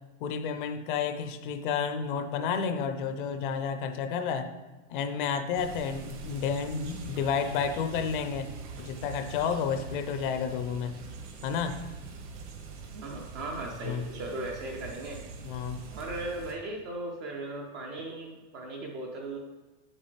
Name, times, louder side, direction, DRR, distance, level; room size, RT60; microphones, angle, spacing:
voice 1, 0.2-4.5 4.9-8.5 8.8-10.9 11.4-11.8 13.8-14.0 15.4-15.8, left 6 dB, 45° left, 9 dB, 0.6 m, -31 dB
sound 1, 5.5-16.5, right 4 dB, 75° right, 1.8 m, -43 dB
voice 2, 12.9-15.2 15.9-19.4, right 2 dB, 20° right, 0 dB, 0.3 m, -37 dB
8.5 x 7.5 x 3.2 m, 1.2 s
supercardioid pair, 175°, 35 cm